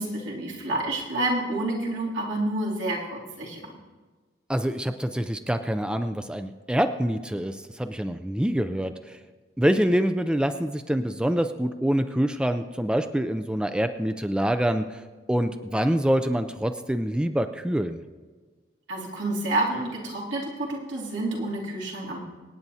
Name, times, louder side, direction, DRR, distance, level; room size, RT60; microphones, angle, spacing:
voice 1, 0.0-3.6 18.9-22.2, right 2 dB, 80° right, -4 dB, 2.8 m, -29 dB
voice 2, 4.5-9.2 9.6-15.0 15.3-18.0, equal, 5° right, 9 dB, 0.3 m, -25 dB
26.0 x 9.2 x 2.8 m, 1.4 s
head